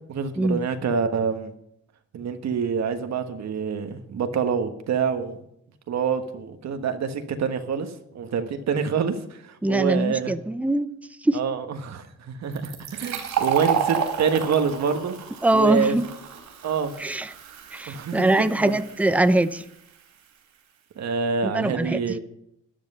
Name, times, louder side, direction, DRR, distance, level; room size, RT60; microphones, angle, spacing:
voice 1, 0.1-1.5 2.1-5.4 5.9-10.3 11.3-15.1 15.5-16.0 16.6-16.9 17.9-18.7 21.0-22.2, right 6 dB, 60° right, 7 dB, 1.4 m, -26 dB
voice 2, 9.6-10.9 11.2-11.4 15.4-16.1 17.0-17.3 17.7-19.6 21.4-22.0, right 1 dB, 5° right, 13 dB, 0.7 m, -22 dB
Fill (with liquid), 12.5-19.9, right 8 dB, 90° right, 4.1 m, -31 dB
13.0 x 10.5 x 5.6 m, 0.77 s
cardioid pair, 90°, 30 cm